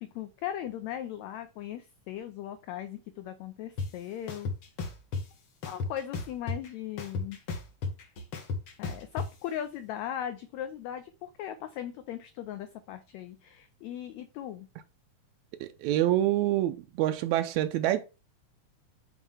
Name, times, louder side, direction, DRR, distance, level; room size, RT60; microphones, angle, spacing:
voice 1, 0.0-4.5 5.6-7.4 8.8-14.7, left 11 dB, 85° left, 1.5 m, -38 dB
sound 1, 3.8-3.9 4.3-5.2 5.6-6.7 7.0-9.3, left 4 dB, 55° left, 1.5 m, -33 dB
voice 2, 15.6-18.1, right 13 dB, 90° right, 1.6 m, -26 dB
7.2 x 3.0 x 5.4 m
omnidirectional pair, 3.7 m